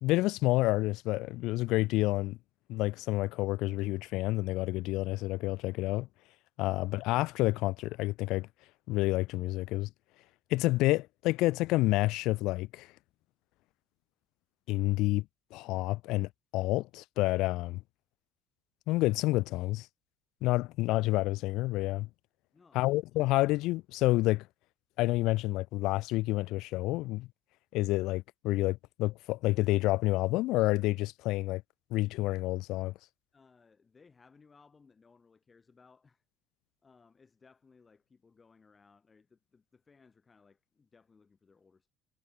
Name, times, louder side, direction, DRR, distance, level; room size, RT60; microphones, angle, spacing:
voice 1, 0.0-2.4 2.7-6.1 6.6-8.5 8.9-9.9 10.5-12.9 14.7-15.2 15.5-17.8 18.9-19.9 20.4-22.1 22.7-24.5 25.0-27.3 27.7-31.6 31.9-32.9, left 19 dB, 70° left, 0.3 m, -29 dB
voice 2, 22.5-22.9 33.3-36.2 36.8-41.9, left 4 dB, 30° left, 5.8 m, -62 dB
hypercardioid pair, 75°, 0 cm